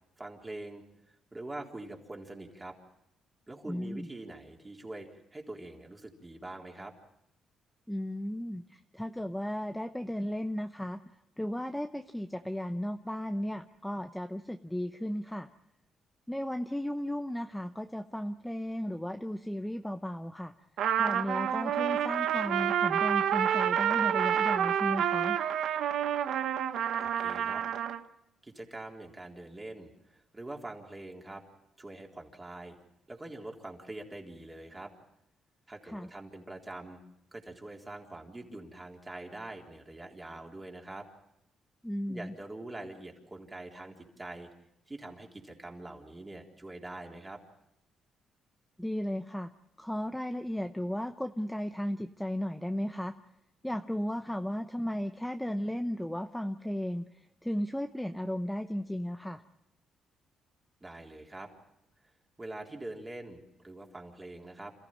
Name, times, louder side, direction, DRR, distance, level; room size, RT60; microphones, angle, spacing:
voice 1, 0.2-2.8 3.5-6.9 27.0-27.6 28.4-31.4 31.8-32.8 33.1-34.9 35.7-37.0 37.3-41.1 42.1-44.5 44.9-47.4 60.8-61.5 62.4-64.7, right 2 dB, 20° right, 1 dB, 3.8 m, -44 dB
voice 2, 3.7-4.1 7.9-11.0 11.4-15.5 16.3-20.5 21.0-25.4 35.8-36.1 41.8-42.3 48.8-49.5 49.8-53.1 53.6-59.4, equal, 5° left, 7 dB, 0.8 m, -35 dB
Trumpet, 20.8-28.0, right 9 dB, 75° right, 1.1 m, -28 dB
27.5 x 15.0 x 9.0 m, 0.83 s
cardioid pair, 90°, 0 cm